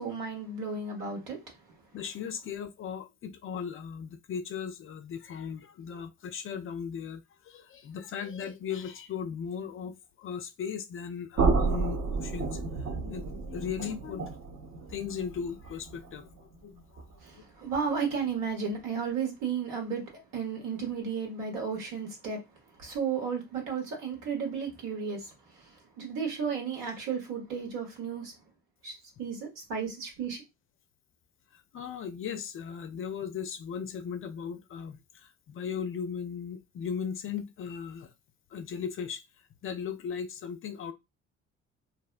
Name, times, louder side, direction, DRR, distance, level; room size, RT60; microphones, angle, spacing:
voice 1, 0.0-1.4 17.2-22.4 22.8-25.3 26.0-28.3 28.8-30.4, right 6 dB, 70° right, 1.3 m, -33 dB
voice 2, 1.9-12.6 13.0-14.3 14.9-17.0 31.5-38.1 38.5-39.2 39.6-40.9, left 7 dB, 40° left, 0.4 m, -37 dB
sound 1, 11.4-17.3, right 4 dB, 45° right, 0.8 m, -31 dB
2.6 x 2.0 x 2.5 m
hypercardioid pair, 55°, 34 cm